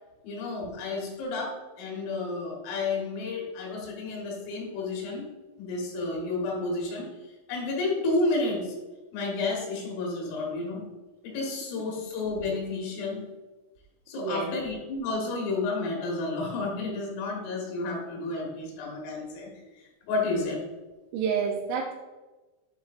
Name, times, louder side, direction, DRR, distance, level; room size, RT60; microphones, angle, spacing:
voice 1, 0.2-5.3 5.6-7.1 7.5-8.8 9.1-10.9 11.2-13.3 14.1-19.6 20.1-20.6, left 3 dB, 85° left, -1 dB, 4.2 m, -31 dB
voice 2, 14.1-14.5 21.1-21.9, right 6 dB, 85° right, 0 dB, 3.1 m, -30 dB
10.0 x 5.4 x 2.5 m, 1.2 s
omnidirectional pair, 5.7 m